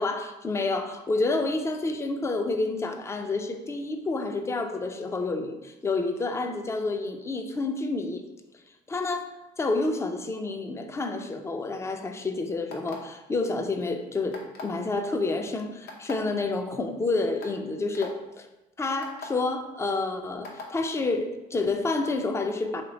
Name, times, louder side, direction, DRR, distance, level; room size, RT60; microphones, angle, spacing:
voice 1, 0.0-8.2 8.9-9.3 9.6-18.5 18.8-22.8, left 3 dB, 15° left, 6 dB, 0.4 m, -29 dB
sound 1, 12.7-13.2 14.3-14.8 15.9-16.1 16.9-17.0 17.4-17.5 17.9-18.1 19.0-19.3 20.4-20.7, left 4 dB, 75° left, 0.8 m, -39 dB
3.0 x 2.9 x 4.0 m, 0.98 s
cardioid pair, 110°, 17 cm